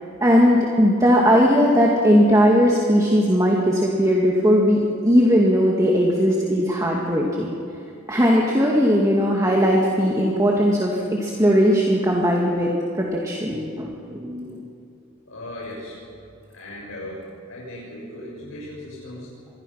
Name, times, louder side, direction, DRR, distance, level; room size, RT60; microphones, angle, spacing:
voice 1, 0.2-7.5 8.1-14.6, equal, 15° right, -2 dB, 2.2 m, -18 dB
voice 2, 15.3-16.0 16.5-19.3, left 1 dB, 70° left, -5 dB, 6.9 m, -37 dB
26.5 x 21.5 x 5.8 m, 2.5 s
head